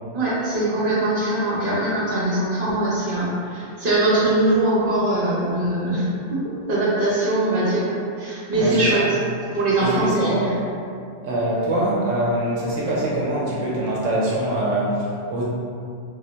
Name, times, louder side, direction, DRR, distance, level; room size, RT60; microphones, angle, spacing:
voice 1, 0.1-6.0 6.3-6.4 6.7-7.9 8.2-9.2 9.5-10.5, right 2 dB, 45° right, -8 dB, 1.1 m, -21 dB
voice 2, 8.6-9.0 9.8-10.6 11.2-15.4, right 1 dB, 75° right, -6 dB, 1.0 m, -23 dB
3.0 x 2.1 x 3.9 m, 2.4 s
omnidirectional pair, 1.3 m